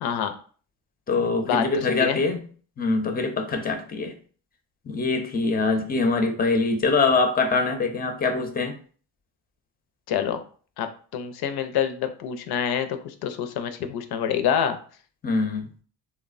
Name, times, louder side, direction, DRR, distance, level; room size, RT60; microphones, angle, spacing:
voice 1, 0.0-0.3 1.4-2.2 10.1-10.4 10.8-10.9 11.1-14.8, left 8 dB, 70° left, 0.5 m, -26 dB
voice 2, 1.1-2.4 2.8-4.1 4.9-8.8 15.2-15.7, left 3 dB, 25° left, 0.5 m, -23 dB
2.9 x 2.1 x 2.4 m
supercardioid pair, 60°, 40 cm